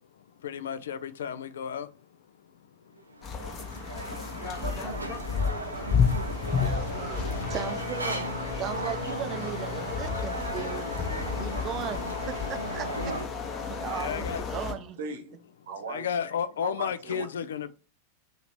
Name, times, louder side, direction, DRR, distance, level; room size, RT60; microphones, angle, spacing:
voice 1, 0.2-1.9 2.8-2.9 13.7-14.4 15.9-17.7, left 8 dB, 65° left, 0.3 m, -34 dB
sound 1, 3.0-13.3, right 2 dB, 80° right, 0.5 m, -36 dB
sound 2, 3.2-14.7, left 6 dB, 25° left, 0.8 m, -32 dB
voice 2, 6.6-7.3 15.0-15.3 15.7-16.1 16.6-17.3, right 4 dB, 60° right, 0.9 m, -38 dB
voice 3, 7.5-8.2 8.6-10.9 11.4-13.2 13.7-15.0, right 10 dB, 30° right, 0.5 m, -37 dB
3.0 x 2.8 x 4.2 m
figure-of-eight pair, 90°, 0 cm